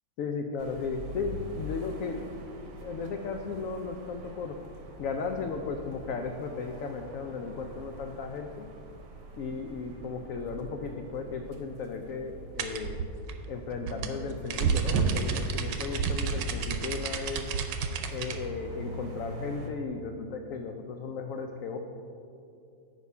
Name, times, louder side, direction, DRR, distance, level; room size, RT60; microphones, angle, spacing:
voice 1, 0.2-4.5 5.0-8.7 9.4-13.0 13.5-17.5 18.1-21.8, left 4 dB, 85° left, 4 dB, 0.7 m, -35 dB
sound 1, 0.6-19.7, right 1 dB, 55° right, 1.1 m, -45 dB
sound 2, 12.6-18.4, right 5 dB, 75° right, 1.2 m, -30 dB
7.9 x 5.0 x 5.5 m, 2.6 s
omnidirectional pair, 2.0 m